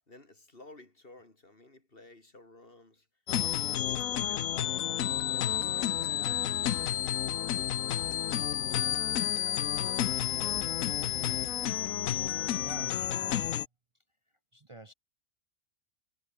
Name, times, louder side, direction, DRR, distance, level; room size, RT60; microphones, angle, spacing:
voice 1, 0.0-3.1 3.4-3.6 3.9-4.9 5.3-8.7 9.0-11.7, left 2 dB, 40° left, 3.8 m, -55 dB
sound 1, 3.3-13.7, left 11 dB, 70° left, 1.2 m, -31 dB
voice 2, 8.7-9.1 12.6-13.6 14.5-14.9, right 2 dB, 30° right, 0.6 m, -48 dB
omnidirectional pair, 1.5 m